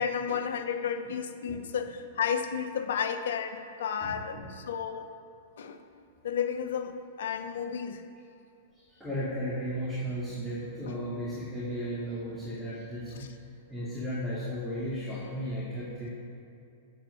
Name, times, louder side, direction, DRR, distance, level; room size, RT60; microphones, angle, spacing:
voice 1, 0.0-5.1 5.6-5.8 6.2-8.0 10.9-11.0 13.2-13.3, left 7 dB, 75° left, 9 dB, 0.8 m, -32 dB
voice 2, 4.0-4.5 8.7-16.1, equal, ahead, -9 dB, 2.3 m, -35 dB
8.0 x 7.2 x 6.4 m, 2.7 s
hypercardioid pair, 120°, 0 cm